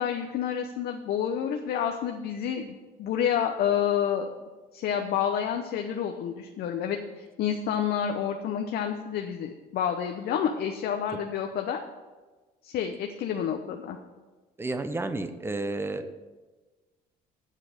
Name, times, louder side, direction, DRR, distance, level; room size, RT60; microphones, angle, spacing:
voice 1, 0.0-4.3 4.7-11.8 12.6-14.0, left 8 dB, 65° left, 4 dB, 0.8 m, -29 dB
voice 2, 14.6-16.1, right 2 dB, 15° right, 10 dB, 0.8 m, -31 dB
7.6 x 7.4 x 6.5 m, 1.3 s
cardioid pair, 110°, 17 cm